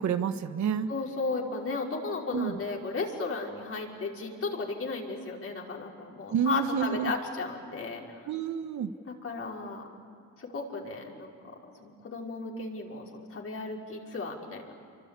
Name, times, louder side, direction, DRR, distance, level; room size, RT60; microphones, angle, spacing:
voice 1, 0.0-0.9 2.3-2.6 6.3-7.1 8.3-8.9, right 7 dB, 65° right, 9 dB, 1.6 m, -29 dB
voice 2, 0.9-8.3 9.2-9.8 10.4-11.3 11.6-14.8, left 3 dB, 50° left, -1 dB, 5.5 m, -35 dB
28.0 x 24.5 x 8.5 m, 2.5 s
cardioid pair, 90°, 30 cm